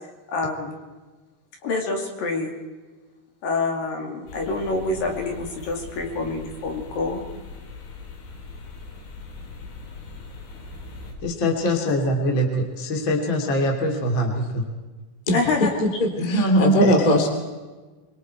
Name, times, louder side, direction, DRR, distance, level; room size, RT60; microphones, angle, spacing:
voice 1, 0.3-0.7 1.6-2.5 3.4-7.2 15.3-15.7, left 3 dB, 55° left, 2 dB, 3.9 m, -26 dB
sound 1, 4.3-11.1, left 3 dB, 70° left, 6.3 m, -40 dB
voice 2, 11.2-14.6 16.2-16.9, equal, 30° left, 2 dB, 2.5 m, -22 dB
voice 3, 15.3-17.3, left 1 dB, 10° left, 3 dB, 2.3 m, -21 dB
26.5 x 23.5 x 4.6 m, 1.3 s
omnidirectional pair, 5.4 m